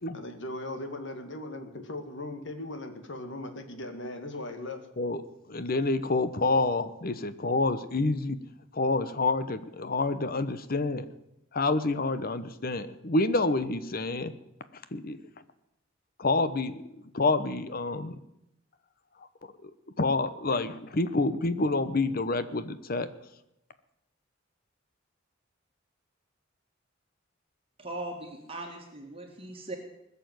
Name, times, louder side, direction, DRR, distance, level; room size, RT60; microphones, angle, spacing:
voice 1, 0.1-4.9, left 2 dB, 65° left, 7 dB, 2.0 m, -38 dB
voice 2, 5.5-8.4 8.7-11.1 11.5-14.3 14.7-15.2 16.2-16.8 17.1-18.2 19.2-19.3 19.6-23.1, left 3 dB, 50° left, 12 dB, 1.0 m, -28 dB
voice 3, 27.8-29.8, right 1 dB, 30° right, 1 dB, 2.0 m, -39 dB
20.5 x 7.0 x 9.4 m, 0.87 s
head